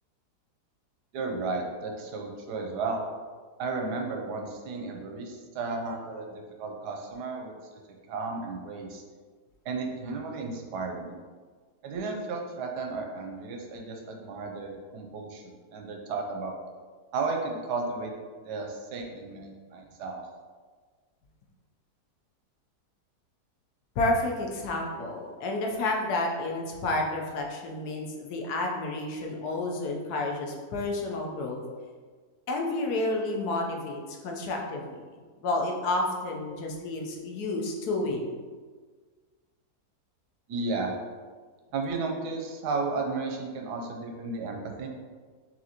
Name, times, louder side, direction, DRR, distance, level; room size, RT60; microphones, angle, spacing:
voice 1, 1.1-3.0 3.6-7.8 8.1-9.0 9.6-11.2 11.8-16.5 17.1-18.1 18.4-20.2 40.5-40.9 41.7-44.9, right 3 dB, 90° right, 2 dB, 1.2 m, -33 dB
voice 2, 24.0-31.6 32.5-35.0 35.4-38.3, left 2 dB, 75° left, 0 dB, 1.2 m, -30 dB
5.7 x 2.6 x 2.8 m, 1.5 s
omnidirectional pair, 1.7 m